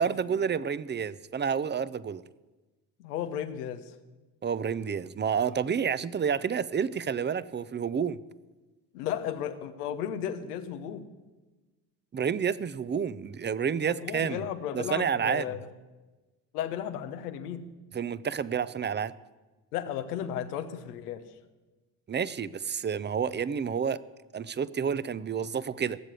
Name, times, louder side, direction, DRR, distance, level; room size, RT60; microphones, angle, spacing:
voice 1, 0.0-2.2 4.4-8.2 12.1-14.4 14.7-15.5 17.9-19.1 22.1-24.0 24.3-26.0, right 7 dB, 25° right, 18 dB, 0.6 m, -29 dB
voice 2, 3.0-3.9 8.9-11.0 13.9-15.7 16.5-17.6 19.7-21.2, left 9 dB, 90° left, 9 dB, 1.1 m, -34 dB
18.0 x 7.5 x 8.3 m, 1.2 s
hypercardioid pair, 60°, 45 cm